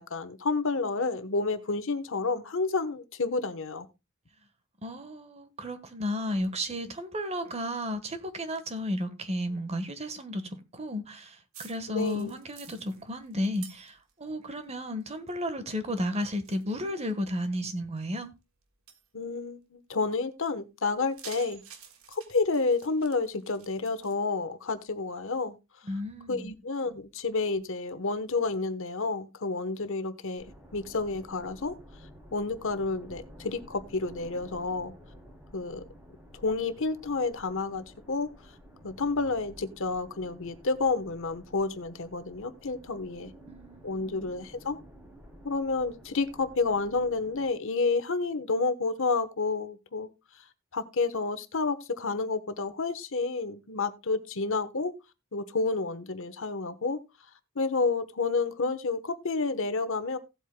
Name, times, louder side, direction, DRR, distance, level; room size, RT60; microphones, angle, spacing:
voice 1, 0.0-3.9 11.9-12.4 19.1-21.6 22.1-25.6 26.3-30.4 30.7-31.8 32.3-34.9 35.5-35.8 36.3-38.3 38.8-43.3 43.8-44.8 45.4-50.1 50.7-54.9 55.3-57.0 57.5-60.2, left 3 dB, 65° left, 1.1 m, -30 dB
voice 2, 4.8-18.3 25.8-26.5 43.2-44.3, left 1 dB, 30° right, 1.3 m, -33 dB
sound 1, 11.5-14.3 14.6-15.4 15.7-17.7 18.2-18.3 18.9-19.1 20.9-24.1, right 8 dB, 75° right, 1.6 m, -51 dB
sound 2, 30.4-47.5, equal, 10° right, 2.9 m, -52 dB
17.0 x 8.2 x 2.2 m
head